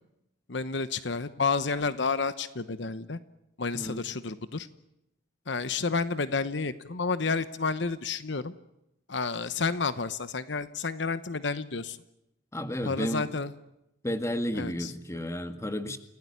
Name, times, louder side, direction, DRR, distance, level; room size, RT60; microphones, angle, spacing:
voice 1, 0.5-3.2 3.6-4.7 5.5-8.5 9.1-12.0 12.8-13.5 14.5-14.9, left 4 dB, 65° left, 13 dB, 1.0 m, -30 dB
voice 2, 12.5-13.4 14.0-16.0, equal, 15° left, 9 dB, 1.8 m, -32 dB
29.0 x 17.0 x 9.9 m, 0.86 s
head